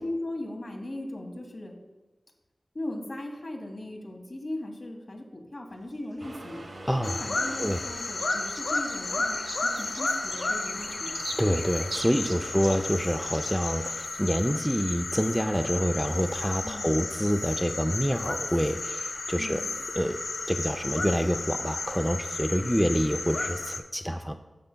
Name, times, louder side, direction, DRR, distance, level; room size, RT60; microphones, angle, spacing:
voice 1, 0.0-1.7 2.7-6.6 7.0-11.1 16.6-16.9 19.4-19.8 22.6-22.7, left 1 dB, 60° left, 1 dB, 1.5 m, -38 dB
sound 1, 5.7-7.2 7.6-14.2, right 2 dB, 60° right, 0.6 m, -44 dB
Accelerating revving vroom, 6.2-13.9, right 1 dB, 80° right, 1.3 m, -46 dB
voice 2, 6.9-7.2 7.6-7.8 11.4-19.6 19.9-20.2 20.5-24.4, equal, ahead, 6 dB, 0.4 m, -27 dB
sound 2, 7.0-23.8, left 3 dB, 80° left, 0.6 m, -33 dB
12.0 x 6.6 x 2.2 m, 1.2 s
wide cardioid pair, 55°, 0 cm